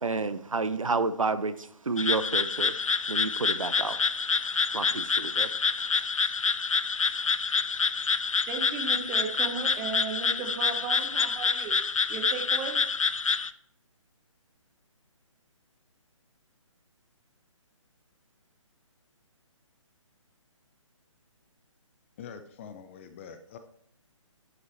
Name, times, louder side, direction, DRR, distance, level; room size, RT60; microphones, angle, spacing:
voice 1, 0.0-2.7 3.1-4.0 4.7-5.5, right 3 dB, 80° right, 13 dB, 0.7 m, -30 dB
sound 1, 2.0-13.5, left 5 dB, 75° left, 0.5 m, -27 dB
voice 2, 8.5-11.8 12.1-12.8, right 6 dB, 15° right, 4 dB, 1.2 m, -35 dB
voice 3, 22.2-23.6, left 7 dB, 25° left, 9 dB, 0.5 m, -44 dB
11.5 x 7.9 x 3.2 m, 0.69 s
figure-of-eight pair, 140°, 17 cm